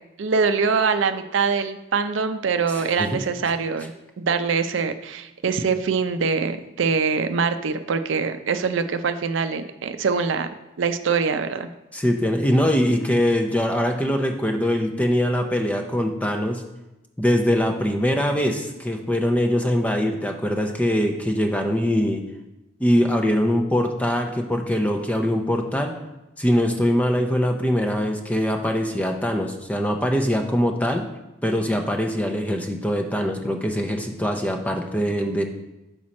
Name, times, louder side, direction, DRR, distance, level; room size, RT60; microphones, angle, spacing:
voice 1, 0.2-10.5 10.8-11.7, right 5 dB, 80° right, 9 dB, 0.5 m, -23 dB
voice 2, 2.7-3.2 11.9-16.6 17.2-22.2 22.8-25.9 26.4-31.1 31.4-35.4, equal, 5° left, 4 dB, 0.5 m, -22 dB
6.1 x 5.1 x 4.2 m, 1.0 s
head